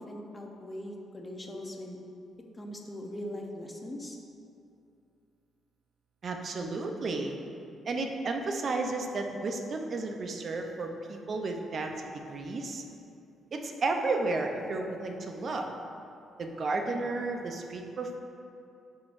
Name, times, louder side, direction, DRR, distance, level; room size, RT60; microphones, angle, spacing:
voice 1, 0.0-2.0 2.5-4.2, left 1 dB, 25° left, 1 dB, 0.8 m, -40 dB
voice 2, 6.2-7.3 7.9-11.9 12.3-12.8 13.5-15.7 16.4-18.2, right 3 dB, 50° right, 3 dB, 0.6 m, -32 dB
11.0 x 3.8 x 2.6 m, 2.6 s
cardioid pair, 90°, 0 cm